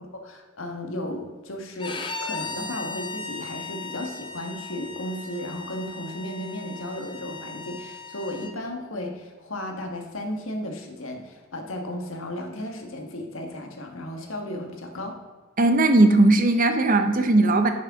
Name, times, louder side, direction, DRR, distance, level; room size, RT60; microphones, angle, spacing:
voice 1, 0.0-15.2, left 1 dB, 85° left, 3 dB, 1.4 m, -34 dB
Bowed string instrument, 1.8-8.5, left 4 dB, 25° left, 0.7 m, -37 dB
voice 2, 15.6-17.7, right 2 dB, 45° right, 8 dB, 0.8 m, -18 dB
10.0 x 6.5 x 3.6 m, 1.4 s
head